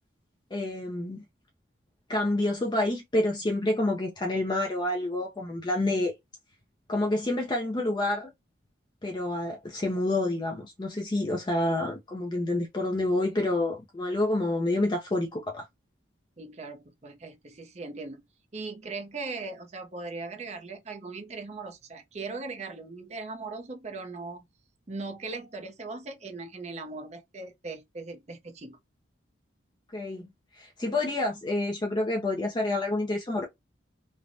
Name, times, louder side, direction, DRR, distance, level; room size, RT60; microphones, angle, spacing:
voice 1, 0.5-1.2 2.1-6.1 6.9-8.3 9.0-15.6 29.9-30.3 30.5-33.4, left 2 dB, 25° left, 0.4 m, -28 dB
voice 2, 16.4-18.3 18.5-24.4 24.9-28.8, right 3 dB, 35° right, 0.5 m, -39 dB
3.3 x 2.1 x 2.5 m
head